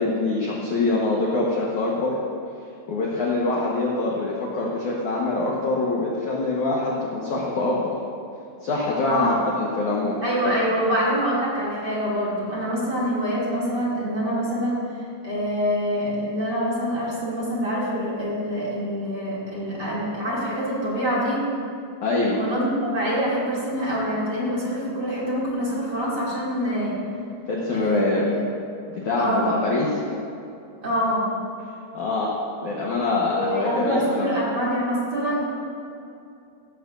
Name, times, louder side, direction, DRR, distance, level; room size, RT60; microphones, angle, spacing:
voice 1, 0.0-2.2 2.9-7.9 8.6-10.5 22.0-22.4 27.5-28.3 28.9-30.0 31.9-32.3 32.6-34.4, left 2 dB, 80° left, -4 dB, 1.7 m, -24 dB
voice 2, 9.0-9.4 10.2-14.8 15.2-21.4 22.4-27.0 27.7-28.4 29.2-29.5 30.8-31.3 33.3-35.6, equal, 30° right, -7 dB, 2.4 m, -25 dB
17.0 x 13.5 x 2.7 m, 2.6 s
omnidirectional pair, 5.6 m